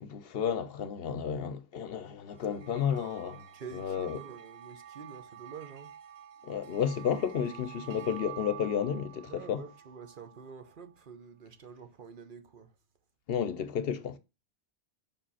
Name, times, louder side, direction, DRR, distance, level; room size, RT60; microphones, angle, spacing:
voice 1, 0.0-3.5 3.7-4.2 6.4-9.6 13.3-14.2, left 8 dB, 65° left, 0.8 m, -32 dB
sound 1, 2.3-10.9, right 11 dB, 75° right, 0.9 m, -49 dB
voice 2, 3.5-5.9 9.3-12.7, right 6 dB, 55° right, 1.0 m, -47 dB
5.2 x 5.0 x 5.5 m
omnidirectional pair, 1.1 m